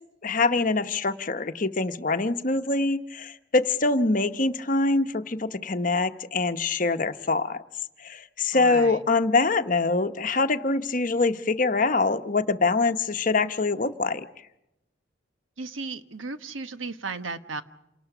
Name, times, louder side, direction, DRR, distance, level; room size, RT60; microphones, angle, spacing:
voice 1, 0.2-7.6 8.0-14.3, left 3 dB, 45° left, 9 dB, 0.9 m, -24 dB
voice 2, 8.5-9.0 15.6-17.6, right 3 dB, 85° right, 9 dB, 1.3 m, -35 dB
28.0 x 18.5 x 6.0 m, 0.89 s
head